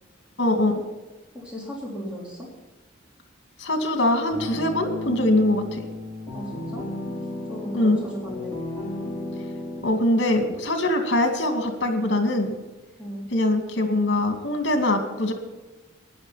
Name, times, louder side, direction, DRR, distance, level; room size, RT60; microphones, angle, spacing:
voice 1, 0.4-0.8 3.6-5.8 7.7-8.0 9.8-12.5 13.3-15.3, left 1 dB, 60° left, 6 dB, 2.3 m, -22 dB
voice 2, 1.3-2.5 6.3-6.9 7.5-8.6 13.0-13.3, equal, 5° right, -5 dB, 3.6 m, -36 dB
sound 1, 4.3-9.8, left 2 dB, 20° left, 3.0 m, -33 dB
15.0 x 10.5 x 5.8 m, 1.2 s
head